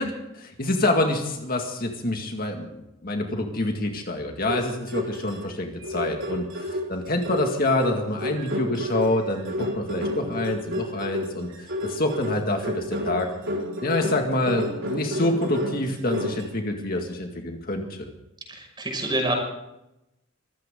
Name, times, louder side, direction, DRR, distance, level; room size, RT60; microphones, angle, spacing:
voice 1, 0.0-11.5 11.8-13.3 13.8-18.1, left 1 dB, 45° left, 3 dB, 2.1 m, -27 dB
sound 1, 4.5-5.5 5.8-16.5, equal, 65° right, 4.4 m, -31 dB
voice 2, 18.5-19.3, right 1 dB, 20° right, 1 dB, 6.0 m, -27 dB
24.5 x 15.0 x 3.8 m, 0.89 s
head